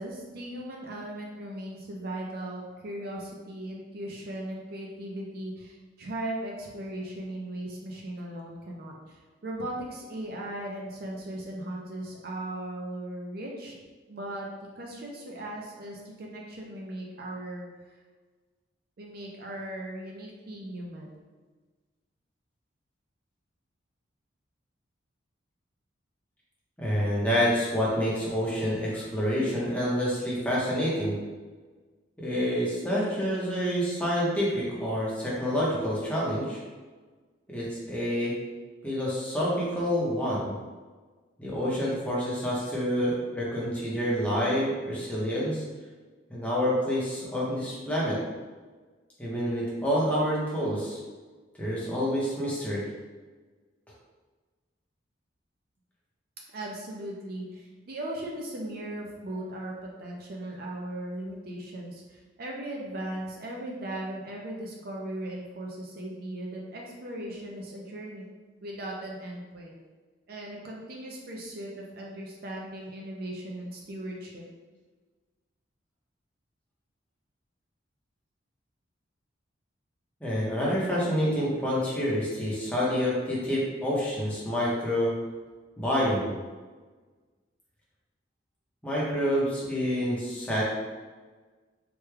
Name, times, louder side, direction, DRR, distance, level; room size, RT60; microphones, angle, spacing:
voice 1, 0.0-13.8 14.1-14.5 14.8-17.7 19.0-21.2 56.5-68.2 68.6-69.8 70.3-74.4, right 1 dB, 50° right, -1 dB, 0.4 m, -38 dB
voice 2, 26.8-31.2 32.2-36.6 37.5-38.3 38.8-40.5 41.4-45.6 46.3-48.2 49.2-51.0 51.6-52.8 80.2-85.1 85.8-86.3 88.8-90.6, equal, 5° left, -6 dB, 0.7 m, -28 dB
3.3 x 2.2 x 3.2 m, 1.4 s
head